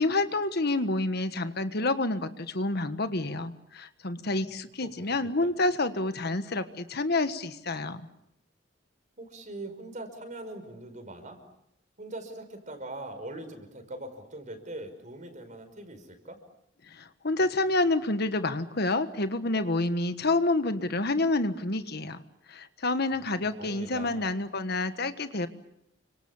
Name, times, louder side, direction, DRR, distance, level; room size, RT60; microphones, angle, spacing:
voice 1, 0.0-8.1 16.9-22.2 22.5-25.5, left 2 dB, 55° left, 10 dB, 1.5 m, -28 dB
voice 2, 4.5-5.5 9.2-11.4 12.0-16.4 23.4-24.3, right 2 dB, 40° right, 8 dB, 5.3 m, -42 dB
30.0 x 25.5 x 7.2 m, 0.77 s
head